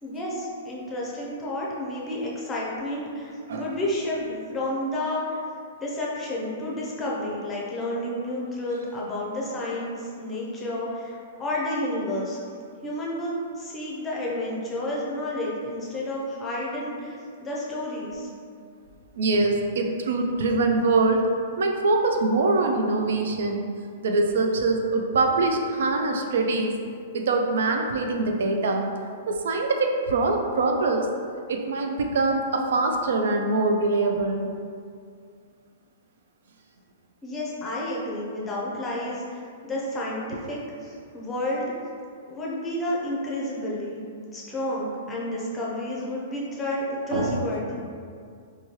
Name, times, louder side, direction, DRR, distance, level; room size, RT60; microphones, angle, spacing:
voice 1, 0.0-5.4 5.8-12.4 12.8-18.3 37.2-41.6 42.3-44.0 44.3-47.7, left 1 dB, 15° left, -5 dB, 0.5 m, -31 dB
voice 2, 19.2-21.2 21.6-23.6 24.0-26.7 27.1-28.8 29.3-31.1 31.5-34.5 47.1-47.4, right 3 dB, 75° right, 3 dB, 0.3 m, -23 dB
3.0 x 2.2 x 2.9 m, 2.3 s
hypercardioid pair, 155°, 0 cm